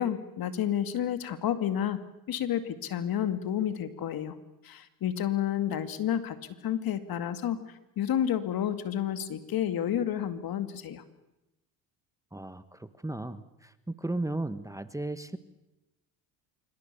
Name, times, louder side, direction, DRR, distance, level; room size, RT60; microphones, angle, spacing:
voice 1, 0.0-4.4 4.6-6.4 6.6-7.6 8.0-11.0, left 10 dB, 55° left, 10 dB, 2.4 m, -30 dB
voice 2, 12.3-15.4, right 2 dB, 5° right, 12 dB, 1.3 m, -35 dB
26.5 x 25.5 x 7.0 m, 0.95 s
supercardioid pair, 85°, 43 cm